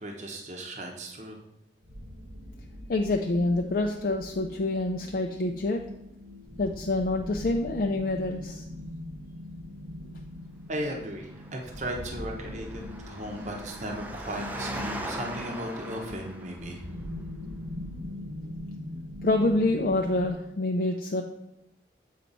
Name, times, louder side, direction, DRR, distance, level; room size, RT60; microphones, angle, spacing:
voice 1, 0.0-1.4 10.7-16.8, right 1 dB, 40° right, 1 dB, 0.9 m, -36 dB
sound 1, 1.8-20.3, left 1 dB, 70° right, 1.2 m, -41 dB
voice 2, 2.9-5.8 6.6-8.6 19.2-21.2, left 2 dB, 50° left, 3 dB, 0.4 m, -27 dB
Engine, 11.2-16.8, right 1 dB, 10° right, 0.5 m, -40 dB
7.3 x 4.5 x 4.0 m, 0.86 s
head